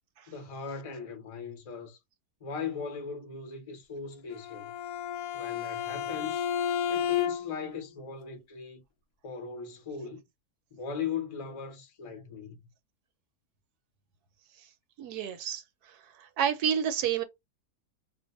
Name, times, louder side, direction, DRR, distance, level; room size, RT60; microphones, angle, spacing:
voice 1, 0.3-2.0 2.4-4.7 5.3-6.5 6.9-8.8 9.2-10.2 10.7-12.7, left 6 dB, 40° left, 0.5 m, -38 dB
Bowed string instrument, 4.3-7.7, left 8 dB, 75° left, 1.0 m, -32 dB
voice 2, 15.0-17.2, right 8 dB, 75° right, 1.1 m, -30 dB
2.5 x 2.2 x 4.0 m
omnidirectional pair, 1.7 m